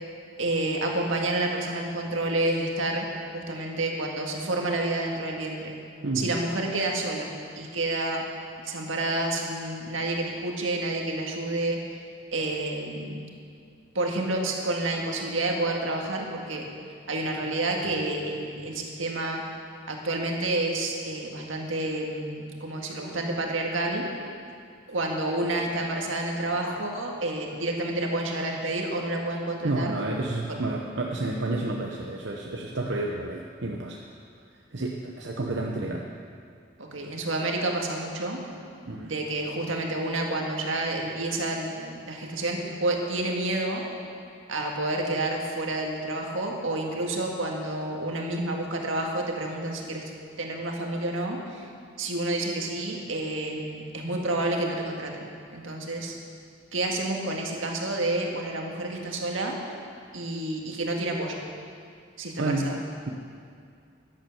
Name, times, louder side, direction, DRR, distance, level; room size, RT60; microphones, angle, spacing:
voice 1, 0.4-3.1 3.3-5.7 6.2-8.2 8.6-11.8 12.3-13.2 14.0-16.7 17.1-19.4 19.9-24.1 24.9-29.9 30.5-30.6 36.8-38.4 39.0-43.9 44.5-50.0 50.4-51.7 52.0-56.2 56.7-59.6 60.1-61.4 62.2-62.8, right 2 dB, 85° right, 1 dB, 1.8 m, -29 dB
voice 2, 29.6-34.0 34.7-36.0 38.9-39.1 62.4-62.7, right 2 dB, 70° right, -1 dB, 0.9 m, -30 dB
11.0 x 10.5 x 7.1 m, 2.3 s
head